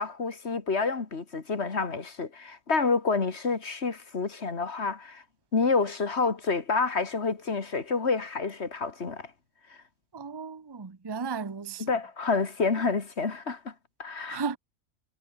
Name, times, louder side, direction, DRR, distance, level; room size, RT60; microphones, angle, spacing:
voice 1, 0.0-5.2 5.5-9.3 11.8-13.7 14.0-14.4, left 4 dB, 60° left, 2.2 m, -28 dB
voice 2, 10.1-11.8 14.3-14.6, right 5 dB, 25° right, 0.7 m, -34 dB
omnidirectional pair, 1.3 m